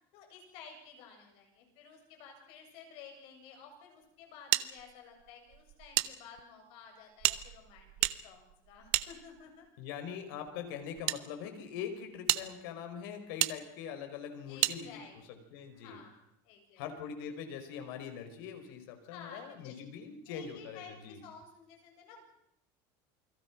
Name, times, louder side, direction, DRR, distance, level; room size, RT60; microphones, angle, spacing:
voice 1, 0.1-7.9 8.2-9.7 14.5-15.2 15.7-16.9 19.1-19.7 20.3-22.2, left 6 dB, 55° left, 3 dB, 7.9 m, -53 dB
sound 1, 4.5-6.1 6.4-6.5 7.2-9.7 10.5-11.2 11.8-11.9 12.3-12.4 13.4-13.5 14.6-14.8, right 19 dB, 60° right, 1.0 m, -32 dB
voice 2, 9.8-15.0 15.5-16.0 16.8-21.2, left 7 dB, 80° left, 6 dB, 4.9 m, -42 dB
29.0 x 21.5 x 6.1 m, 0.74 s
cardioid pair, 165°, 11 cm